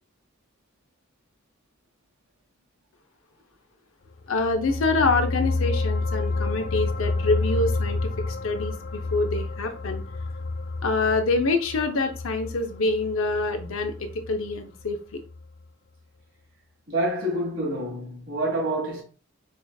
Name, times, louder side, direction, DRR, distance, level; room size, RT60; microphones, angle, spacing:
sound 1, 4.2-14.9 15.3-15.4, left 3 dB, 40° left, 0.3 m, -30 dB
voice 1, 4.3-10.0 10.8-15.2, left 3 dB, 75° left, 0.6 m, -26 dB
voice 2, 16.9-19.0, right 1 dB, 65° right, 1.9 m, -27 dB
4.8 x 2.4 x 2.3 m
head